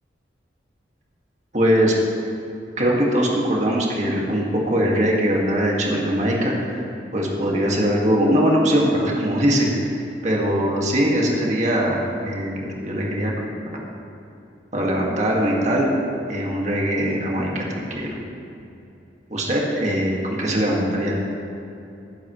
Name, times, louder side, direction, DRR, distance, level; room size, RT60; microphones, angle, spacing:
voice 1, 1.5-1.9 2.8-6.8 7.1-13.9 14.7-15.9 16.3-18.2 19.3-21.3, equal, 40° right, -2 dB, 2.0 m, -21 dB
20.0 x 10.5 x 3.2 m, 2.8 s
head